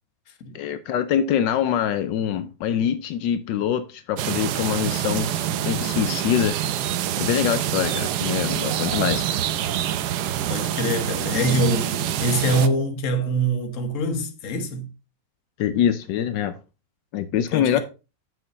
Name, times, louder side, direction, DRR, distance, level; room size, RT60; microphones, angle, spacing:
voice 1, 0.5-6.6 7.2-9.2 15.6-16.5 17.1-17.8, left 9 dB, 80° left, 1.3 m, -24 dB
sound 1, 4.2-12.7, right 11 dB, 70° right, 1.1 m, -26 dB
voice 2, 10.5-14.9 17.5-17.8, right 1 dB, 50° left, 1.4 m, -24 dB
6.8 x 6.4 x 4.0 m
omnidirectional pair, 2.0 m